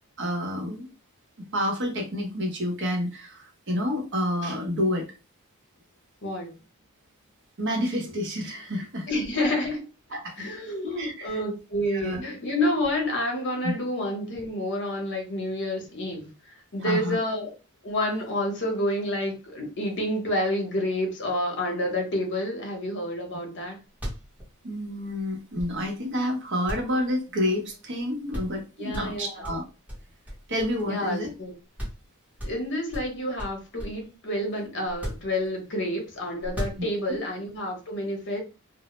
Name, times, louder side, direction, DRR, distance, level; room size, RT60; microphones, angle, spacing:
voice 1, 0.2-0.9 1.5-5.1 7.6-9.1 10.1-10.6 10.8-11.4 11.9-12.2 13.6-13.7 16.8-17.2 24.6-29.6 30.5-31.3 37.1-37.2, left 1 dB, 55° right, 2 dB, 0.7 m, -29 dB
voice 2, 6.2-6.5 9.1-9.9 10.4-16.3 16.7-17.5 17.8-23.8 28.8-29.3 30.8-31.5 32.4-38.4, left 1 dB, 55° left, 2 dB, 0.8 m, -29 dB
sound 1, 23.9-26.1 26.7-27.7 28.0-28.1 28.3-28.6 28.9-31.1 31.4-31.5 31.8-32.1 32.4-34.1 34.9-35.8 36.4-37.2, equal, 5° right, 0.8 m, -37 dB
2.0 x 2.0 x 2.9 m, 0.31 s
head